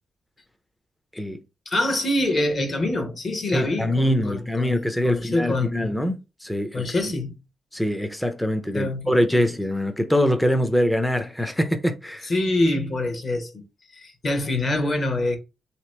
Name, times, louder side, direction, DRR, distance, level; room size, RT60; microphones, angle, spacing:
voice 1, 1.7-4.8 5.0-5.9 6.7-7.4 8.7-9.5 12.2-13.6 13.9-15.4, left 2 dB, 40° left, 0.9 m, -25 dB
voice 2, 3.5-6.8 7.7-12.3, equal, 5° left, 0.5 m, -24 dB
3.7 x 2.9 x 3.2 m
cardioid pair, 130°, 0 cm